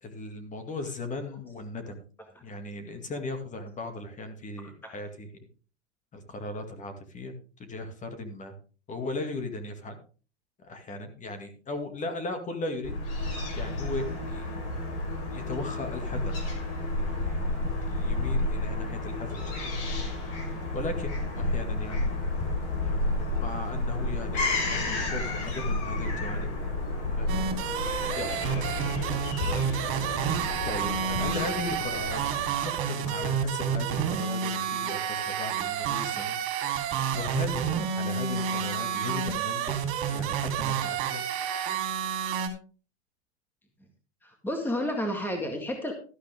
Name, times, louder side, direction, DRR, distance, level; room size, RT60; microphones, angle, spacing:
voice 1, 0.0-2.0 2.4-5.3 6.1-7.3 7.7-8.5 8.9-10.0 10.6-13.0 13.6-14.6 15.3-16.3 17.0-17.4 17.9-19.7 20.7-22.2 22.8-23.1 23.4-26.5 27.1-27.6 28.2-28.9 29.4-30.1 30.7-32.2 32.6-36.4 36.6-36.8 37.1-39.8 40.1-41.3, left 2 dB, 20° left, 7 dB, 2.2 m, -37 dB
Fowl / Gull seagull, 12.8-32.7, left 2 dB, 45° left, 5.8 m, -31 dB
sound 1, 27.3-42.5, right 8 dB, 40° right, 3.6 m, -30 dB
voice 2, 44.2-45.9, left 1 dB, 5° left, 3 dB, 1.9 m, -31 dB
13.5 x 11.5 x 3.6 m, 0.37 s
hypercardioid pair, 130°, 35 cm